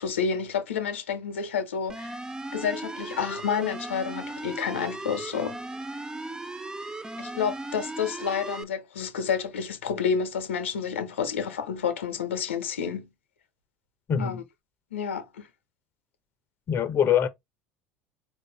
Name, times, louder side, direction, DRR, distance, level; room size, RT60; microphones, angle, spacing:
voice 1, 0.0-2.2 2.5-5.6 7.2-13.1 14.2-14.4 14.9-15.5, left 6 dB, 85° left, 0.8 m, -29 dB
sound 1, 1.9-8.6, right 2 dB, 10° right, 0.5 m, -37 dB
voice 2, 14.1-14.4 16.7-17.3, left 8 dB, 40° left, 0.7 m, -23 dB
4.4 x 2.6 x 3.2 m
hypercardioid pair, 70°, 6 cm